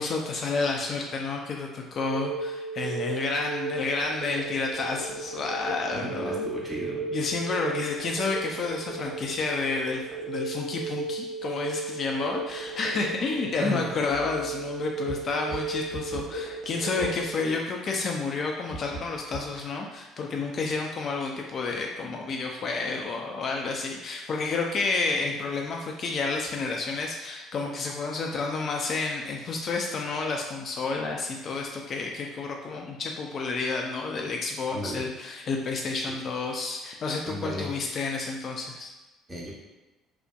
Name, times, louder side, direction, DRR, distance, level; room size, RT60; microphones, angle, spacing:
voice 1, 0.0-6.5 7.1-10.0 10.3-38.9, left 4 dB, 45° left, 1 dB, 0.3 m, -30 dB
Telephone, 2.0-17.3, right 4 dB, 45° right, 0.6 m, -35 dB
voice 2, 5.9-7.2 13.6-13.9 34.7-35.0 37.2-37.7 39.3-39.5, equal, 20° right, -5 dB, 0.9 m, -34 dB
sound 1, 14.1-14.7 15.0-16.4 17.0-17.2 17.8-17.9 18.7-19.6, right 1 dB, 85° left, 0.7 m, -41 dB
2.6 x 2.0 x 2.3 m, 1.1 s
hypercardioid pair, 55°, 0 cm